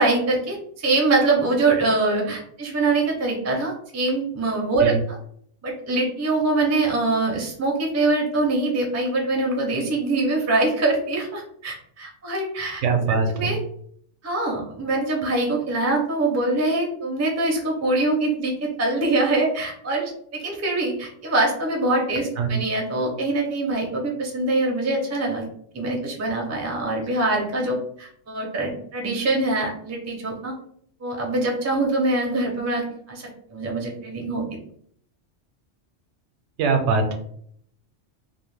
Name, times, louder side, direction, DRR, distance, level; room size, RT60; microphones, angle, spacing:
voice 1, 0.0-4.9 5.6-12.8 13.3-13.6 14.2-25.4 25.7-30.5 31.0-32.8 33.1-34.4, right 2 dB, 25° right, -1 dB, 0.4 m, -23 dB
voice 2, 12.8-13.5 22.4-22.5 36.6-37.2, right 4 dB, 80° right, 5 dB, 0.9 m, -22 dB
2.3 x 2.1 x 3.1 m, 0.64 s
omnidirectional pair, 1.2 m